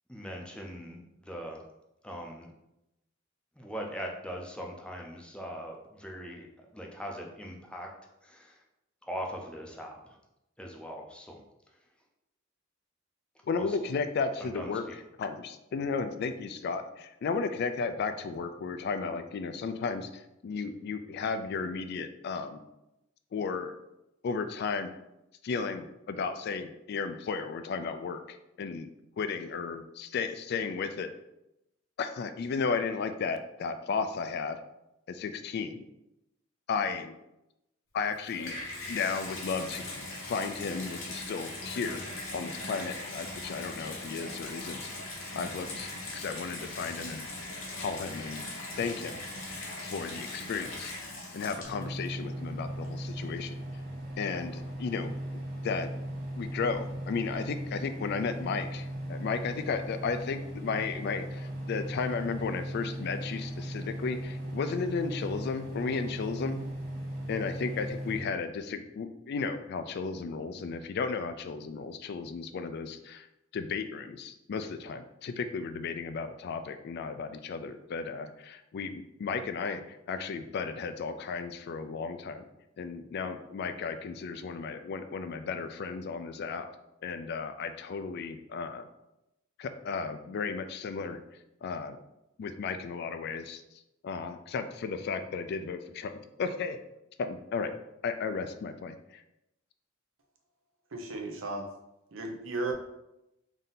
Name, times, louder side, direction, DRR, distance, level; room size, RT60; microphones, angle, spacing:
voice 1, 0.1-1.6 2.0-2.5 3.6-7.9 8.2-8.6 9.0-10.2 10.6-11.4 13.6-13.8 14.4-14.9, equal, 5° left, 0 dB, 0.5 m, -41 dB
voice 2, 13.5-14.8 15.2-22.6 23.3-23.7 24.2-24.9 25.4-28.9 29.2-31.1 32.0-34.6 35.1-35.8 36.7-37.2 37.9-38.6 38.9-39.8 40.2-42.1 42.3-44.8 45.3-47.2 47.8-48.4 48.8-49.2 49.5-50.9 51.3-53.5 54.2-55.2 55.6-55.9 56.4-66.6 67.3-73.3 73.5-82.4 82.8-86.7 87.0-88.9 89.6-91.2 91.6-92.0 92.4-93.6 94.0-96.8 97.2-97.8 98.0-99.2, left 5 dB, 55° left, 9 dB, 0.3 m, -34 dB
Water tap faucet / Bathtub (filling or washing), 38.0-52.1 52.8-52.9, left 2 dB, 75° left, 1.1 m, -40 dB
sound 1, 51.6-68.2, right 1 dB, 55° right, 1.3 m, -38 dB
voice 3, 100.9-101.7 102.1-102.7, right 2 dB, 75° right, 3 dB, 0.7 m, -34 dB
3.6 x 2.7 x 3.9 m, 0.89 s
head